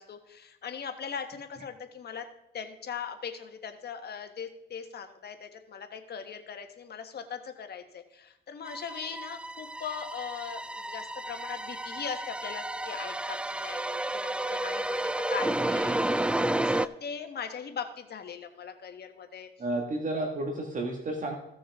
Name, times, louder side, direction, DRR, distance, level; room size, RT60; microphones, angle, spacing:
voice 1, 0.0-2.3 2.5-16.0 16.4-19.5 20.1-20.3, left 7 dB, 55° left, 6 dB, 1.3 m, -40 dB
sound 1, 8.6-16.9, right 1 dB, 5° right, 0.3 m, -31 dB
voice 2, 19.6-21.3, right 2 dB, 40° right, 1 dB, 1.7 m, -31 dB
16.0 x 6.2 x 3.6 m, 0.84 s
cardioid pair, 90°, 20 cm